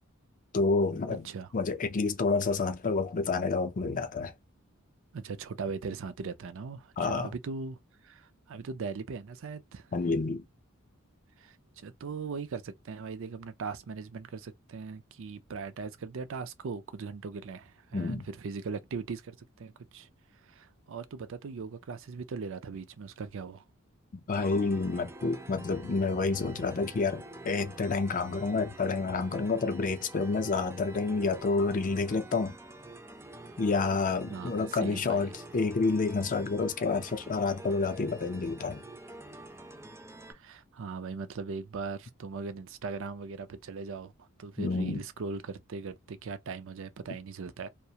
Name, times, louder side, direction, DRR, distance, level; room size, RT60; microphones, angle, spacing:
voice 1, 0.5-1.3 1.5-4.3 7.0-7.3 9.9-10.4 17.9-18.2 24.1-32.6 33.6-38.8 44.6-45.0, left 4 dB, 40° left, 0.5 m, -29 dB
voice 2, 5.1-9.9 11.4-20.1 20.4-23.6 34.3-35.3 40.3-47.7, right 4 dB, 65° right, 0.5 m, -39 dB
sound 1, 24.3-40.3, right 1 dB, 15° right, 0.5 m, -47 dB
2.4 x 2.0 x 2.8 m
head